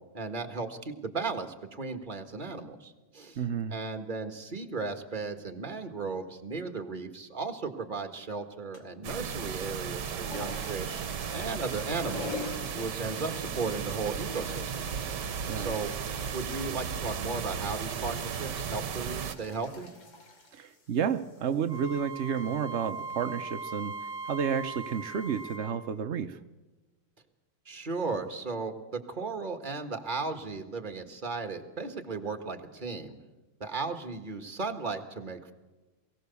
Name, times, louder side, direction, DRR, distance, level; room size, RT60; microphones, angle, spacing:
voice 1, 0.1-3.4 3.7-11.0 11.3-12.4 12.7-15.9 16.3-19.9 27.7-33.2 33.6-35.5, right 4 dB, 25° right, 6 dB, 1.6 m, -36 dB
voice 2, 3.4-3.8 15.5-15.7 20.5-26.4, right 7 dB, 80° right, 8 dB, 0.6 m, -31 dB
sound 1, 8.7-9.1 9.7-25.6, left 3 dB, 65° left, 3.4 m, -47 dB
sound 2, 9.0-19.3, right 7 dB, 60° right, 1.6 m, -35 dB
Wind instrument woodwind instrument, 21.7-25.8, right 4 dB, 15° left, 4.8 m, -39 dB
22.5 x 17.0 x 7.0 m, 1.2 s
omnidirectional pair, 2.3 m